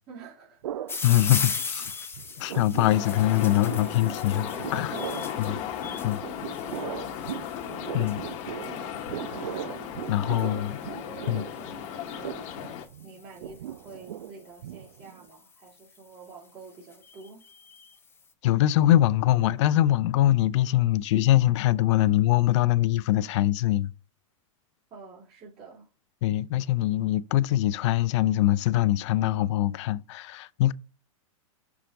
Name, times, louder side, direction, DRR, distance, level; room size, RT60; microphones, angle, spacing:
voice 1, 0.1-1.3 4.5-5.5 6.9-7.4 10.2-12.4 13.0-17.4 24.9-25.9, right 4 dB, 35° right, 3.1 m, -48 dB
sound 1, 0.6-1.9 2.1-15.3, right 11 dB, 80° right, 0.4 m, -39 dB
sound 2, 0.9-14.1 14.9-15.4 15.9-16.0 16.2-16.3 16.6-18.0, left 5 dB, 15° left, 0.7 m, -39 dB
voice 2, 1.0-1.9 2.4-4.9 5.4-5.6 6.0-6.2 7.9-8.2 10.1-10.8 11.3-11.5 18.4-23.9 26.2-30.7, left 14 dB, 60° left, 0.5 m, -23 dB
sound 3, 2.8-12.9, left 9 dB, 40° left, 1.1 m, -36 dB
6.0 x 4.9 x 3.9 m
hypercardioid pair, 115°, 18 cm